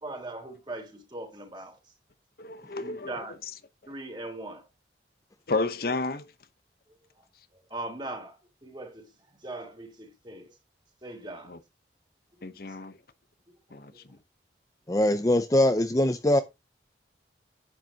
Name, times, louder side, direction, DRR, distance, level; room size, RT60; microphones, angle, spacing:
voice 1, 0.0-1.8 2.8-3.4 3.9-4.7 7.7-9.1 9.4-10.5 11.0-11.6 13.9-14.0, right 2 dB, 25° right, 3.5 m, -40 dB
voice 2, 2.4-3.2 3.8-3.9 5.5-6.3 11.4-11.6 12.4-13.0 13.7-14.2, left 3 dB, 55° left, 0.9 m, -32 dB
voice 3, 14.9-16.4, left 1 dB, 20° left, 0.6 m, -22 dB
10.5 x 9.0 x 2.8 m
head